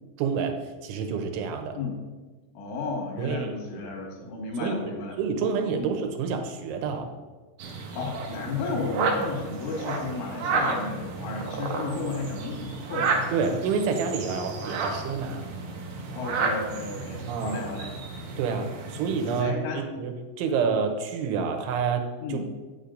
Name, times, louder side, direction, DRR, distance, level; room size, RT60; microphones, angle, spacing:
voice 1, 0.2-1.8 3.2-3.8 4.2-4.3 4.6-4.8 5.2-7.1 13.3-15.4 17.3-17.6 18.4-22.4, right 5 dB, 85° right, 5 dB, 3.3 m, -28 dB
voice 2, 2.5-5.2 5.8-5.9 7.8-13.2 16.1-17.9 19.4-19.8 22.2-22.4, left 3 dB, 85° left, -1 dB, 4.6 m, -33 dB
sound 1, 7.6-19.4, right 4 dB, 70° right, 2.4 m, -32 dB
9.0 x 8.5 x 3.9 m, 1.3 s
omnidirectional pair, 5.4 m